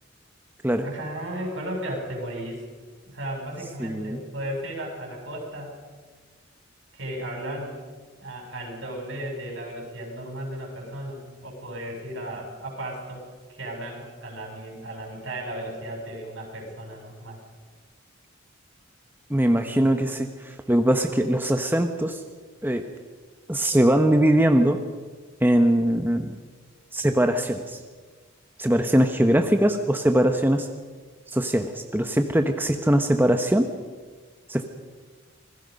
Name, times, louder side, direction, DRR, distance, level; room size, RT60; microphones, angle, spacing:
voice 1, 0.8-2.6 3.0-5.7 6.9-7.8 8.2-17.4, right 1 dB, 70° right, 0 dB, 7.2 m, -35 dB
voice 2, 3.8-4.2 19.3-22.2 22.6-22.8 23.5-24.8 25.4-26.4 26.9-27.8 28.6-30.7 31.3-33.7 34.5-34.6, right 1 dB, 10° right, 6 dB, 1.0 m, -21 dB
26.5 x 20.0 x 5.3 m, 1.4 s
head